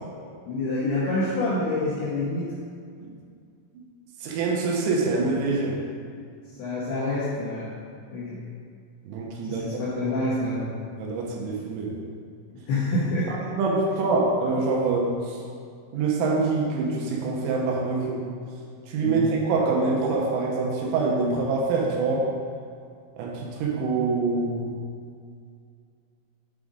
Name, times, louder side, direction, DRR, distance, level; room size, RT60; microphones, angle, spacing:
voice 1, 0.5-2.5 6.6-7.7 8.1-8.4 9.5-10.7 12.5-13.3 19.0-19.2, left 2 dB, 75° left, -8 dB, 2.4 m, -27 dB
voice 2, 4.2-5.8 9.1-9.7 11.0-12.0 13.3-15.4 15.9-18.3 18.9-22.3 23.2-24.8, right 3 dB, 85° right, -2 dB, 3.5 m, -25 dB
8.3 x 5.0 x 3.8 m, 2.3 s
omnidirectional pair, 5.8 m